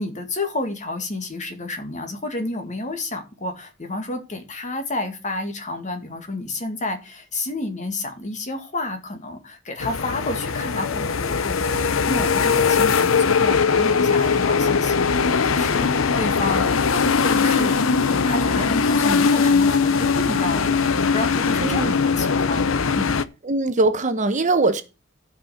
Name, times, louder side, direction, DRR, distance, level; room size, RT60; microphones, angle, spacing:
voice 1, 0.0-23.2, left 2 dB, 40° left, 2.1 m, -30 dB
sound 1, 9.8-23.2, left 5 dB, 90° left, 0.7 m, -20 dB
voice 2, 23.4-24.8, right 2 dB, 40° right, 1.1 m, -21 dB
12.5 x 5.4 x 5.8 m
head